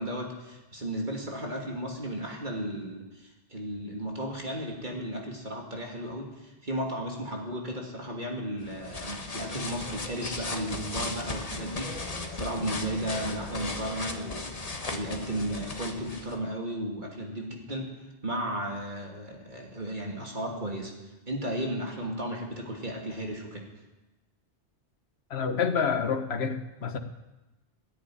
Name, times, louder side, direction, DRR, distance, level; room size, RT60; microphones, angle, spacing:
voice 1, 0.0-17.9 18.2-20.9 21.3-23.7, right 1 dB, 45° right, 0 dB, 2.7 m, -34 dB
sound 1, 8.6-16.4, left 3 dB, 35° left, 1.3 m, -36 dB
voice 2, 25.3-27.0, left 6 dB, 65° left, 8 dB, 1.4 m, -28 dB
13.5 x 10.0 x 10.0 m, 1.0 s
omnidirectional pair, 1.2 m